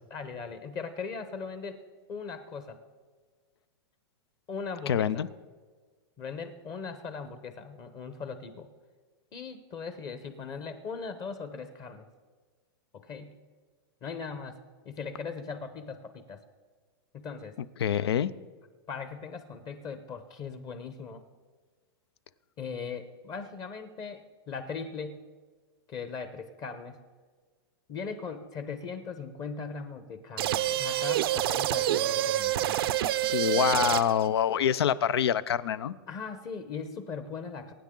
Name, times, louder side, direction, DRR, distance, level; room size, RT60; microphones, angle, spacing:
voice 1, 0.1-2.8 4.5-5.3 6.2-8.7 9.3-12.1 12.9-13.4 14.0-14.6 14.8-16.4 17.1-17.6 18.9-21.2 22.6-25.3 25.9-27.0 27.9-33.0 33.6-33.8 36.1-37.7, left 5 dB, 30° left, 10 dB, 1.0 m, -39 dB
voice 2, 4.9-5.3 17.8-18.3 33.3-35.9, left 9 dB, 85° left, 18 dB, 0.6 m, -26 dB
sound 1, 30.4-34.3, right 13 dB, 65° right, 0.5 m, -27 dB
23.5 x 9.3 x 3.8 m, 1.5 s
supercardioid pair, 145°, 13 cm